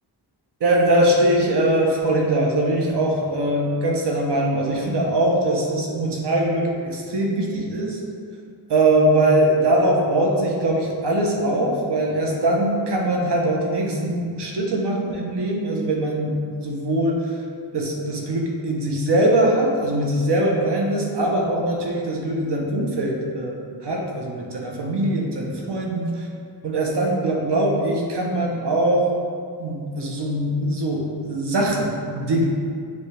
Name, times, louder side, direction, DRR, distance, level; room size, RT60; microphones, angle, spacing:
voice 1, 0.6-8.0 8.7-16.3 16.6-17.2 17.7-23.6 23.8-26.1 26.6-29.1 29.6-32.5, right 1 dB, 75° right, -1 dB, 0.9 m, -22 dB
6.9 x 2.4 x 3.3 m, 2.3 s
wide cardioid pair, 150°, 41 cm